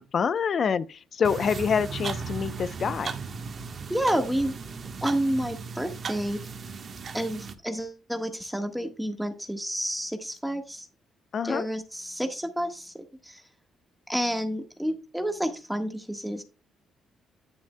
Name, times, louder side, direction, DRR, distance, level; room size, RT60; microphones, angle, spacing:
voice 1, 0.0-3.2 11.3-11.7, left 6 dB, 50° left, 0.6 m, -26 dB
sound 1, 1.2-7.5, right 5 dB, 45° right, 1.3 m, -36 dB
voice 2, 3.9-4.5 5.0-6.4 7.1-10.9 11.4-13.4 14.1-16.4, equal, ahead, 1.4 m, -30 dB
10.0 x 9.2 x 2.2 m
cardioid pair, 80°, 0 cm